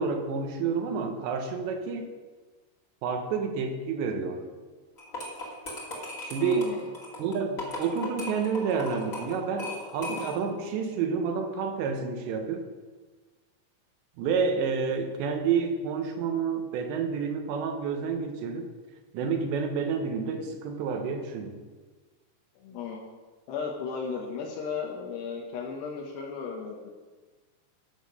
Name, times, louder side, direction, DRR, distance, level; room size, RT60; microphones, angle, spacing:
voice 1, 0.0-2.0 3.0-4.5 6.2-6.7 7.2-12.7 14.2-18.7 19.1-21.6, right 5 dB, 85° right, 5 dB, 3.3 m, -29 dB
sound 1, 5.0-10.6, left 1 dB, 30° left, 1.5 m, -38 dB
voice 2, 6.4-6.8 22.6-23.0 23.5-26.9, left 5 dB, 75° left, -2 dB, 3.1 m, -35 dB
13.5 x 6.5 x 5.4 m, 1.3 s
omnidirectional pair, 5.0 m